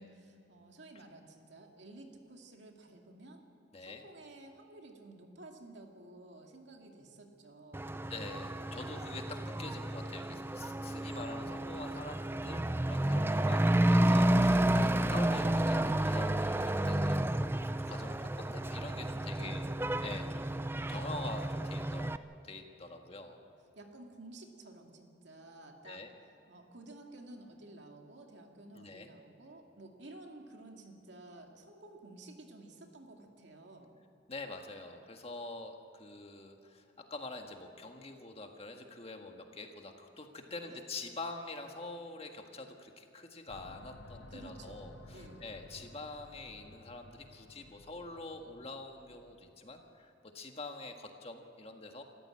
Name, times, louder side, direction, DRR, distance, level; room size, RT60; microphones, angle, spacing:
voice 1, 0.0-3.4 3.8-8.0 13.3-13.6 19.4-19.7 23.8-26.0 26.5-34.0 40.5-40.8 44.3-45.5, right 2 dB, 65° right, 2 dB, 2.5 m, -53 dB
Truck / Accelerating revving vroom, 7.7-22.2, right 1 dB, 10° right, 0.4 m, -31 dB
voice 2, 8.1-19.6 20.0-20.6 20.9-22.1 22.4-23.4 25.8-26.1 28.7-29.1 34.3-52.0, left 2 dB, 30° left, 4 dB, 1.6 m, -46 dB
sound 1, 43.5-49.8, left 1 dB, 80° left, 1.4 m, -55 dB
27.0 x 14.0 x 8.7 m, 2.8 s
head